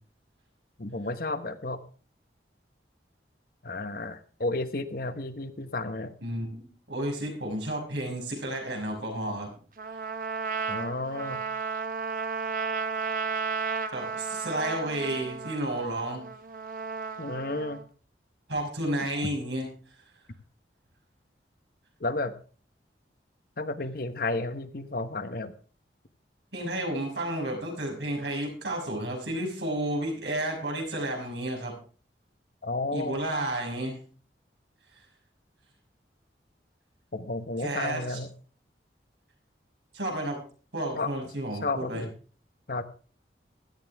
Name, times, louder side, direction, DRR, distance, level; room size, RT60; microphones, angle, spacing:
voice 1, 0.8-1.8 3.6-6.1 10.7-11.4 17.2-17.8 22.0-22.3 23.6-25.5 32.6-33.2 37.1-38.3 41.0-41.1 41.6-42.1 42.7-42.8, left 2 dB, 55° left, 10 dB, 1.1 m, -32 dB
voice 2, 6.2-9.5 9.9-10.0 13.9-16.2 18.5-19.7 26.5-31.7 32.9-34.0 37.6-38.2 39.9-40.4 40.7-42.0, right 1 dB, 80° right, 1 dB, 6.3 m, -32 dB
Trumpet, 9.8-17.8, right 5 dB, 50° right, 1.1 m, -33 dB
16.0 x 13.0 x 3.6 m, 0.40 s
head